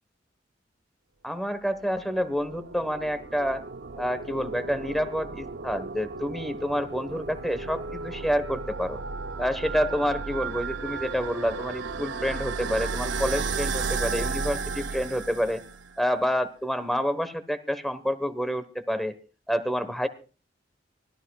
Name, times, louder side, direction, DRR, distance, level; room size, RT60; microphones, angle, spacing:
voice 1, 1.2-3.6 4.0-9.0 9.4-15.6 16.0-19.2 19.5-20.1, equal, ahead, 12 dB, 1.2 m, -28 dB
sound 1, 1.8-15.9, right 4 dB, 75° right, 0.6 m, -34 dB
24.5 x 16.5 x 2.4 m, 0.36 s
head